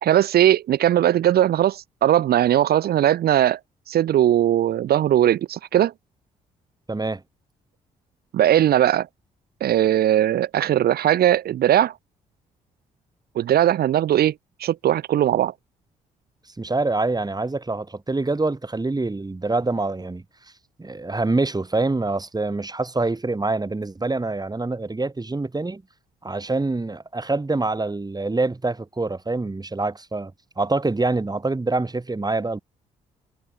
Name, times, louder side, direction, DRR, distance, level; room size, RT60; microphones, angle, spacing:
voice 1, 0.0-3.6 3.9-5.9 8.3-9.1 9.6-11.9 13.4-14.3 14.6-15.5, right 11 dB, 65° right, 2.5 m, -19 dB
voice 2, 6.9-7.2 16.6-20.2 20.8-25.8 26.2-30.3 30.6-32.6, right 3 dB, 20° right, 6.4 m, -25 dB
hypercardioid pair, 50°, 17 cm